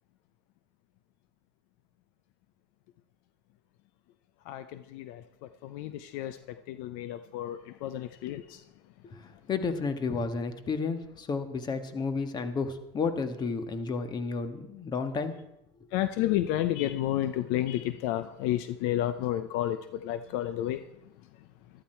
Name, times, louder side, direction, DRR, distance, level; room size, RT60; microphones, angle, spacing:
voice 1, 4.5-5.2 5.6-8.6 15.9-20.8, left 13 dB, 70° left, 0.7 m, -31 dB
voice 2, 9.0-15.3, left 4 dB, 35° left, 1.6 m, -32 dB
14.0 x 13.0 x 4.5 m
supercardioid pair, 110°, 13 cm